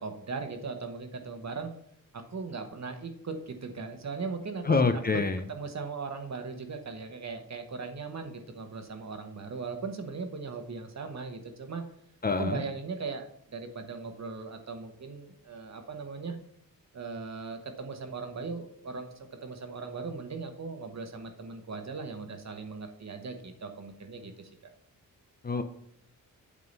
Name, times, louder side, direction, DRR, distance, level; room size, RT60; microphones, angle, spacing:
voice 1, 0.0-1.7 2.1-4.8 5.5-11.8 12.4-16.4 16.9-24.5, right 4 dB, 50° right, 6 dB, 1.2 m, -38 dB
voice 2, 4.6-5.4 12.2-12.6 25.4-25.6, left 4 dB, 25° left, 8 dB, 0.5 m, -26 dB
8.4 x 3.7 x 5.3 m, 0.71 s
cardioid pair, 85°, 34 cm